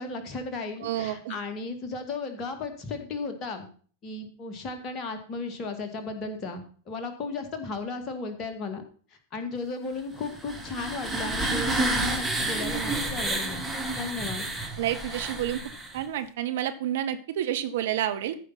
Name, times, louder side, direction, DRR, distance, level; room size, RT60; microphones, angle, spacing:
voice 1, 0.0-3.7 4.0-8.9 9.3-13.7 13.9-14.5, left 3 dB, 30° left, 6 dB, 2.2 m, -35 dB
voice 2, 0.8-1.4 14.8-15.6 15.9-18.4, right 11 dB, 55° right, 8 dB, 1.0 m, -29 dB
sound 1, 10.2-16.0, right 2 dB, 5° right, 2.0 m, -30 dB
14.0 x 5.6 x 5.9 m, 0.43 s
figure-of-eight pair, 90°, 0 cm